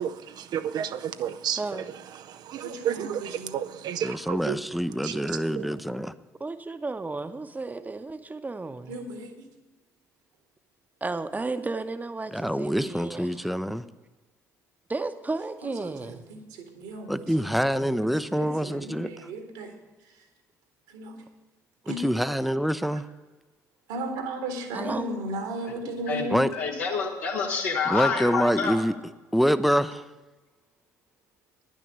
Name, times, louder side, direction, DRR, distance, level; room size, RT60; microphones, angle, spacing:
voice 1, 0.0-4.6 5.0-5.9, right 9 dB, 50° right, 0.5 m, -32 dB
voice 2, 2.6-3.5 8.9-9.5 15.6-17.8 18.3-19.7 20.9-21.2 21.9-22.1 22.9-23.0 23.9-26.4, right 1 dB, 70° right, 1.8 m, -35 dB
voice 3, 4.0-6.1 12.3-13.8 17.1-19.1 21.9-23.1 26.3-26.5 27.9-29.0 29.3-30.0, equal, ahead, 0.6 m, -26 dB
voice 4, 6.4-9.0 11.0-13.5 14.9-16.2 24.7-25.1, right 3 dB, 20° right, 0.9 m, -33 dB
voice 5, 26.1-28.8, left 5 dB, 75° left, 1.6 m, -28 dB
10.5 x 6.4 x 8.7 m
figure-of-eight pair, 50°, 9 cm